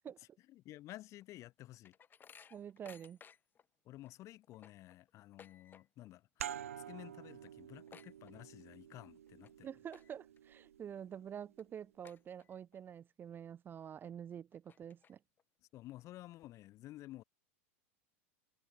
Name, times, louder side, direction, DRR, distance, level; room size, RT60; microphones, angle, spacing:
voice 1, 0.0-1.9 3.8-9.7 15.7-17.2, left 15 dB, 45° left, 4.4 m, -53 dB
Cabin hook swung against a wooden door, 1.2-3.6 4.0-4.1 4.4-6.1 6.4-6.8 7.1-7.2 7.4-8.8 9.3-9.5 9.9-10.4 10.9-11.0 11.6-11.7 12.0-12.8 13.2-13.3 14.0-14.1 14.5-15.4, left 7 dB, 25° left, 3.9 m, -60 dB
voice 2, 2.5-3.2 9.6-15.2, right 8 dB, 30° right, 0.8 m, -47 dB
sound 1, 6.4-11.7, right 10 dB, 80° right, 2.5 m, -49 dB
hypercardioid pair, 95°, 7 cm